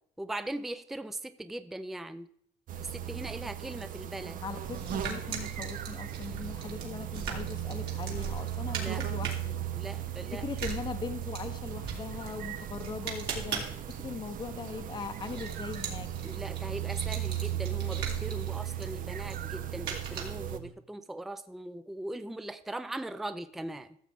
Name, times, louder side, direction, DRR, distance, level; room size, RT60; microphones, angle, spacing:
voice 1, 0.2-2.3 2.8-4.4 8.8-9.0 9.7-10.5 16.2-24.0, right 1 dB, ahead, 11 dB, 0.4 m, -40 dB
sound 1, 2.7-20.6, right 11 dB, 55° right, 0.6 m, -37 dB
voice 2, 4.4-9.9 10.3-13.7 14.0-16.1, left 5 dB, 25° left, 6 dB, 0.8 m, -40 dB
sound 2, 4.6-20.7, right 6 dB, 70° right, 2.7 m, -41 dB
14.0 x 7.3 x 3.5 m, 0.66 s
cardioid pair, 110°, 17 cm